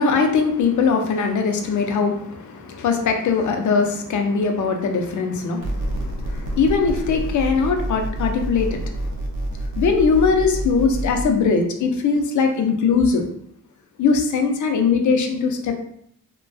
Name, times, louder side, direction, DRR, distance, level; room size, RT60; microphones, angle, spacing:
voice 1, 0.0-9.0 9.8-13.2 14.0-15.8, left 5 dB, 65° left, 4 dB, 0.4 m, -21 dB
sound 1, 5.6-11.3, right 1 dB, 65° right, 0.6 m, -27 dB
2.4 x 2.2 x 2.2 m, 0.70 s
wide cardioid pair, 125°, 32 cm